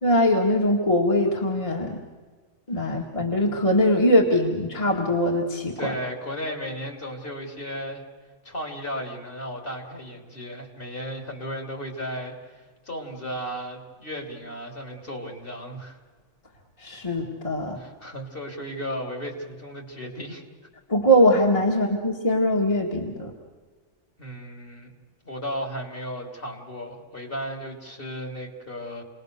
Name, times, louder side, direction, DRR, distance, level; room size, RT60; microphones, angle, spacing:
voice 1, 0.0-2.0 2.7-5.9 16.8-17.8 20.9-23.3, equal, 25° left, -1 dB, 2.2 m, -22 dB
voice 2, 5.8-8.1 8.4-16.0 17.7-20.4 24.2-24.9 25.3-29.0, equal, 45° left, 1 dB, 3.5 m, -35 dB
29.5 x 20.5 x 6.7 m, 1.5 s
omnidirectional pair, 1.3 m